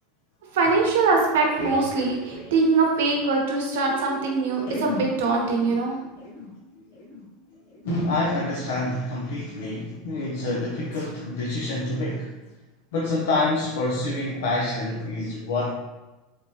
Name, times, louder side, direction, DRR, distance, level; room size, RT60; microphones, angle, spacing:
voice 1, 0.5-6.0, right 3 dB, 90° right, 0 dB, 0.8 m, -22 dB
sound 1, 1.2-3.3 3.6-3.7 3.8-4.0 4.6-9.7 10.1-10.4 10.9-11.1 11.6-11.9 12.4-12.5 13.2-13.3, left 1 dB, 85° left, 1.3 m, -37 dB
voice 2, 7.8-12.4 12.9-15.7, left 2 dB, 70° left, -3 dB, 0.5 m, -27 dB
3.4 x 2.9 x 2.7 m, 1.1 s
supercardioid pair, 175°, 0 cm